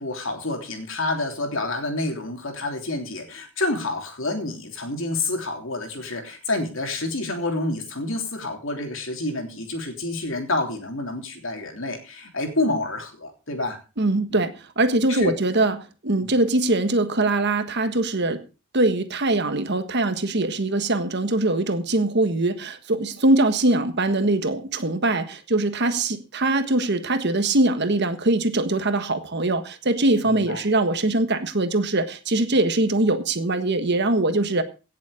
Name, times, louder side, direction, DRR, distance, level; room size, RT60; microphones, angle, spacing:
voice 1, 0.0-13.8 14.3-14.4 15.1-15.3 16.2-16.3 30.2-30.6, left 2 dB, 65° left, 4 dB, 3.2 m, -28 dB
voice 2, 14.0-18.4 18.7-34.6, right 2 dB, 50° right, 9 dB, 1.5 m, -22 dB
17.0 x 7.3 x 5.0 m, 0.33 s
head